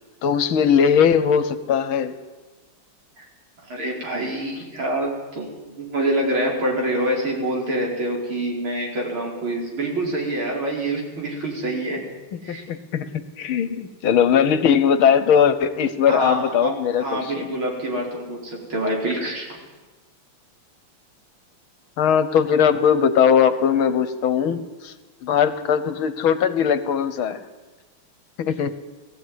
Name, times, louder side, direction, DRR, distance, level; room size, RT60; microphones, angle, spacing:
voice 1, 0.2-2.1 12.5-13.1 13.4-17.5 22.0-24.9 25.2-27.4 28.4-28.7, left 7 dB, 70° left, 12 dB, 1.8 m, -19 dB
voice 2, 3.7-12.0 12.4-12.6 16.0-16.7 17.0-19.6, right 1 dB, 70° right, -1 dB, 5.4 m, -26 dB
18.5 x 15.5 x 9.5 m, 1.2 s
omnidirectional pair, 2.4 m